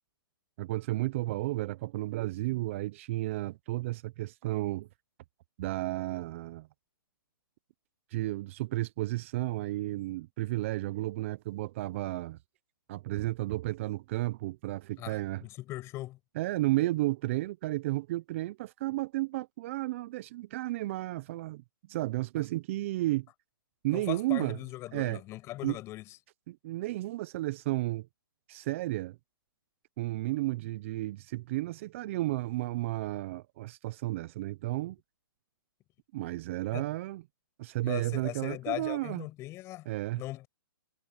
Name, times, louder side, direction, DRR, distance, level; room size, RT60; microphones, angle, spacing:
voice 1, 0.6-4.9 5.6-6.7 8.1-12.4 12.9-15.4 16.4-21.6 21.9-23.3 23.8-24.6 24.9-25.2 25.6-25.8 26.5-28.1 28.5-29.2 30.0-35.0 36.1-37.2 37.6-39.3 39.9-40.2, right 18 dB, 35° right, 0.5 m, -32 dB
voice 2, 15.0-16.2 23.9-26.2 36.7-36.9 37.8-39.9 40.1-40.5, left 17 dB, 25° left, 6.4 m, -39 dB
hypercardioid pair, 150°, 12 cm